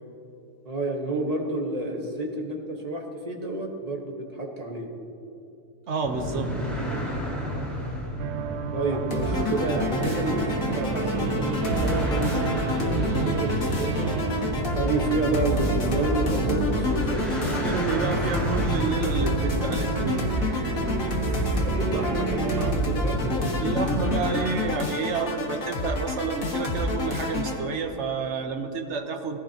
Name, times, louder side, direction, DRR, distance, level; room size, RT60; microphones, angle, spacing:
voice 1, 0.6-4.9 8.7-14.1 14.7-17.3 21.6-23.6 23.9-24.4, right 2 dB, 25° right, 0 dB, 1.3 m, -30 dB
voice 2, 5.9-6.5 8.9-9.0 17.6-20.2 23.6-29.4, right 5 dB, 50° right, 5 dB, 1.1 m, -30 dB
sound 1, 6.0-24.7, left 1 dB, ahead, 2.6 m, -31 dB
sound 2, 8.2-22.7, right 8 dB, 80° right, 1.2 m, -31 dB
sound 3, 9.1-27.6, left 2 dB, 55° left, 1.9 m, -29 dB
18.5 x 15.0 x 2.9 m, 2.7 s
omnidirectional pair, 1.8 m